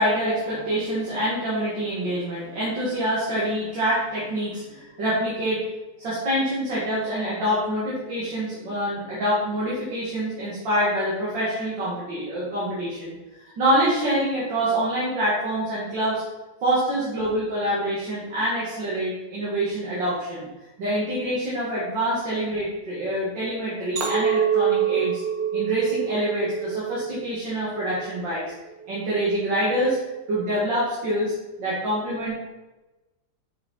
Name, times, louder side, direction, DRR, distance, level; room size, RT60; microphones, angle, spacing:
voice 1, 0.0-5.6 6.0-13.2 13.6-16.2 16.6-20.5 20.8-25.2 25.5-28.4 28.9-30.0 30.3-32.3, equal, 75° right, -8 dB, 2.6 m, -26 dB
Chink clink, 24.0-28.3 28.8-29.2, right 8 dB, 55° right, 1.5 m, -26 dB
6.2 x 6.0 x 4.2 m, 1.1 s
omnidirectional pair, 2.0 m